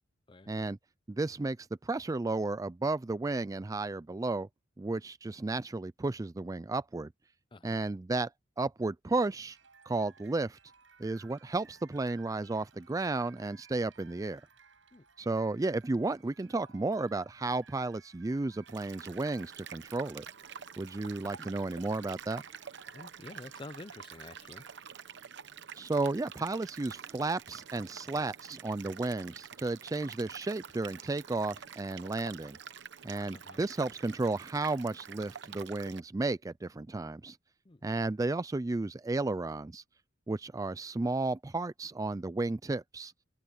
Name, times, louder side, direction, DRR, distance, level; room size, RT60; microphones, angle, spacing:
voice 1, 0.5-0.8 1.1-4.5 4.8-7.1 7.6-8.3 8.6-9.6 9.9-10.6 11.0-14.4 15.2-20.2 20.8-22.4 25.8-32.6 33.0-37.4 37.8-39.8 40.3-43.1, right 2 dB, 20° right, 0.4 m, -33 dB
voice 2, 7.5-7.8 14.9-15.1 22.9-24.6 33.3-33.6 37.6-37.8, left 2 dB, 25° left, 0.7 m, -48 dB
sound 1, 9.5-24.8, right 5 dB, 85° right, 6.8 m, -60 dB
sound 2, 18.7-36.0, right 7 dB, 65° right, 1.0 m, -48 dB
open air
head